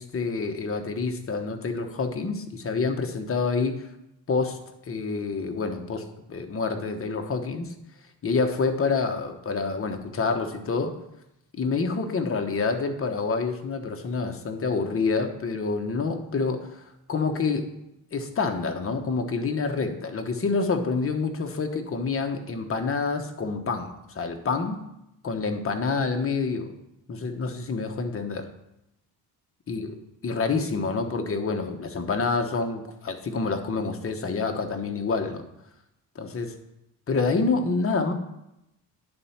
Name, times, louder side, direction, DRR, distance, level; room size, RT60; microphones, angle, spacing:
voice 1, 0.0-3.8 4.3-4.6 4.9-6.0 6.3-7.7 8.2-11.0 11.5-16.8 17.1-17.7 18.1-24.8 25.2-26.7 27.1-28.5 29.7-29.9 30.2-35.4 36.1-36.5 37.1-38.1, left 4 dB, 30° left, 5 dB, 1.1 m, -27 dB
9.7 x 4.4 x 5.7 m, 0.86 s
cardioid pair, 95°, 41 cm